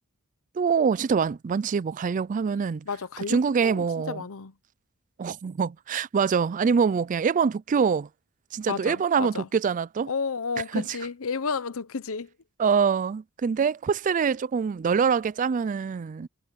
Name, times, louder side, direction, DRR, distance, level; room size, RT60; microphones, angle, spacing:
voice 1, 0.6-2.9 3.3-4.2 5.2-8.1 8.5-10.1 10.7-10.8 12.6-16.3, right 6 dB, 35° right, 0.3 m, -24 dB
voice 2, 2.9-4.5 8.7-9.5 10.1-12.3, left 5 dB, 65° left, 0.8 m, -32 dB
head